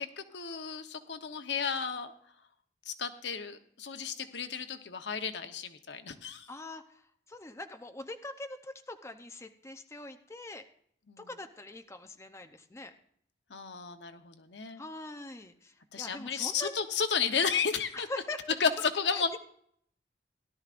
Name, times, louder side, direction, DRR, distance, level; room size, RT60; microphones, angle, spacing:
voice 1, 0.0-2.1 2.9-6.5 11.1-11.3 13.5-14.8 15.9-18.1 18.6-19.4, left 6 dB, 80° left, 8 dB, 1.0 m, -33 dB
voice 2, 6.5-7.0 7.3-10.6 11.2-12.9 14.8-16.8 17.9-18.4 19.1-19.4, left 2 dB, 15° left, 7 dB, 0.7 m, -43 dB
17.5 x 12.0 x 2.5 m, 0.65 s
head